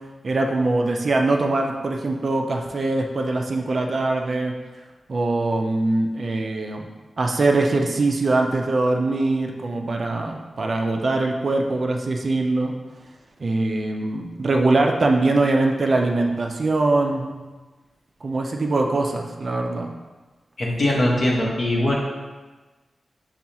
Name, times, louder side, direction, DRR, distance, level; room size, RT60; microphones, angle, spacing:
voice 1, 0.2-4.5 5.1-6.9 7.2-12.7 13.4-17.3 18.2-19.9, right 2 dB, 45° right, 2 dB, 0.4 m, -22 dB
voice 2, 20.6-22.0, left 1 dB, 55° left, -3 dB, 0.9 m, -21 dB
6.6 x 2.3 x 2.8 m, 1.3 s
wide cardioid pair, 130°, 0 cm